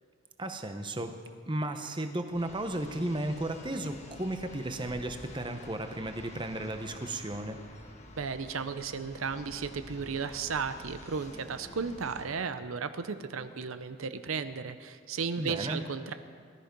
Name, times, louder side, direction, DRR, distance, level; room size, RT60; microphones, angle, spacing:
voice 1, 0.4-1.2 1.5-7.6 15.4-15.9, right 1 dB, 20° right, 7 dB, 0.8 m, -34 dB
sound 1, 2.3-12.3, left 1 dB, 30° left, 1.4 m, -49 dB
voice 2, 8.2-16.1, right 5 dB, 75° right, 11 dB, 0.6 m, -34 dB
18.5 x 13.0 x 5.3 m, 2.1 s
head